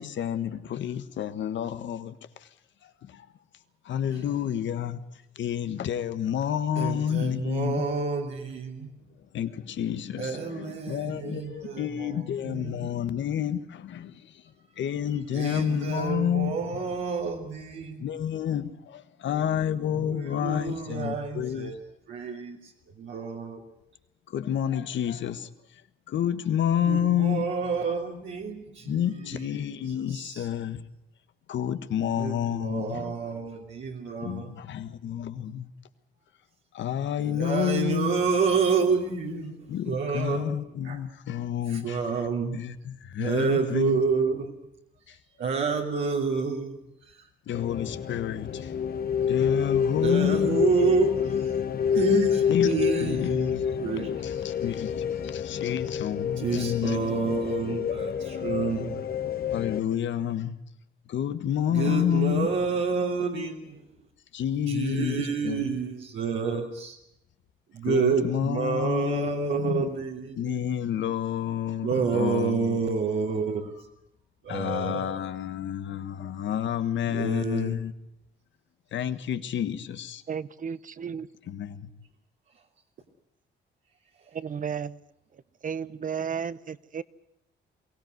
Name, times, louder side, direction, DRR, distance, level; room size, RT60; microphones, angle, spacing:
voice 1, 0.0-2.5 2.8-3.3 3.8-5.0 5.3-7.8 9.3-16.8 18.0-21.7 24.3-25.8 26.1-27.5 28.8-30.8 31.5-33.1 34.2-35.7 36.7-38.2 39.7-42.0 42.5-44.1 45.1-45.2 47.5-48.7 49.2-50.6 52.5-52.7 53.0-53.8 54.2-57.1 59.5-60.5 61.1-62.5 64.3-65.8 67.8-69.9 70.4-72.8 74.5-77.9 78.9-80.2 81.5-81.9, left 9 dB, 70° left, 1.5 m, -29 dB
voice 2, 6.8-8.9 10.2-12.9 15.3-18.1 20.0-21.8 22.1-22.7 23.0-23.6 26.8-29.4 30.1-30.5 32.1-34.5 37.2-40.5 40.8-41.0 41.7-42.6 43.2-44.5 45.4-47.2 49.9-51.5 51.9-54.1 56.4-59.0 61.7-63.8 64.7-67.0 67.7-70.7 71.8-73.9 74.4-75.2 77.0-77.7, right 5 dB, 70° right, 2.9 m, -29 dB
sound 1, 47.5-59.8, left 7 dB, 50° left, 1.1 m, -28 dB
voice 3, 80.3-81.3 84.3-85.0 85.3-87.0, right 7 dB, 40° right, 0.9 m, -33 dB
23.0 x 16.5 x 9.5 m
cardioid pair, 90°, 20 cm